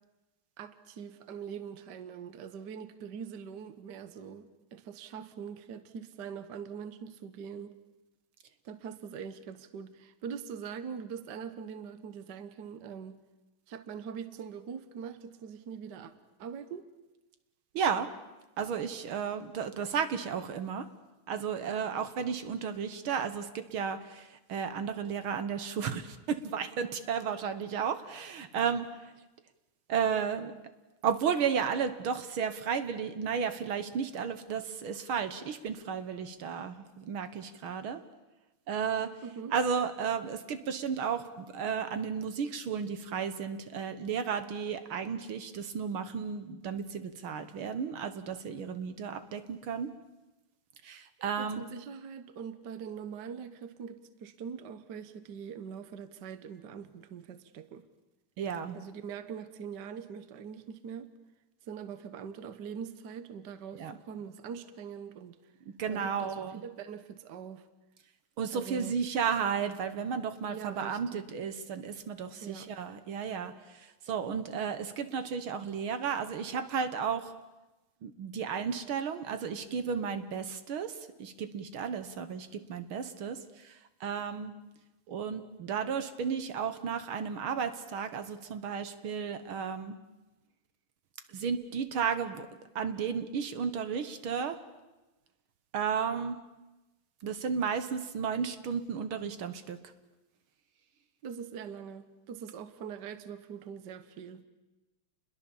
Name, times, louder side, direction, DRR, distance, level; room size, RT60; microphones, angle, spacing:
voice 1, 0.6-7.8 8.6-13.2 13.7-16.1 16.4-16.9 39.2-39.5 51.2-57.8 58.7-61.1 61.7-65.4 65.9-67.7 68.5-69.0 70.5-71.3 72.4-72.7 101.2-104.4, right 7 dB, 55° right, 11 dB, 1.7 m, -43 dB
voice 2, 17.7-18.1 18.6-20.9 21.3-28.9 29.9-30.5 31.0-38.0 38.7-39.1 39.5-49.9 50.8-51.7 58.4-58.9 63.7-63.9 65.8-66.6 68.4-77.3 78.0-80.9 81.2-83.4 83.6-84.5 85.1-90.0 91.3-92.5 92.8-94.6 95.7-96.4 97.2-99.8, right 6 dB, 75° right, 10 dB, 2.1 m, -33 dB
30.0 x 21.5 x 7.2 m, 1.1 s
omnidirectional pair, 2.3 m